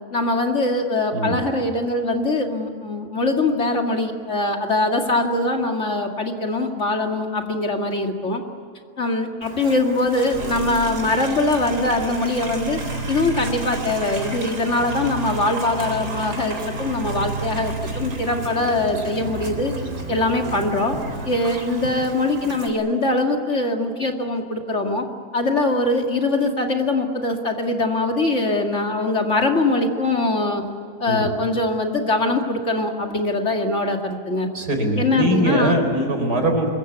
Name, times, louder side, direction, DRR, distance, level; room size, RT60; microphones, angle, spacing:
voice 1, 0.1-8.4 9.0-12.8 13.1-19.7 20.1-21.0 21.2-25.0 25.3-30.6 31.0-34.5 35.0-35.7, left 2 dB, 45° left, 3 dB, 2.6 m, -22 dB
Livestock farm animals working animals, 9.4-22.7, right 2 dB, 65° right, 4.2 m, -35 dB
sound 1, 10.3-22.2, right 2 dB, 45° right, 4.1 m, -32 dB
voice 2, 34.5-36.7, right 1 dB, 80° right, 4 dB, 4.9 m, -21 dB
26.0 x 22.5 x 8.3 m, 2.3 s
omnidirectional pair, 1.7 m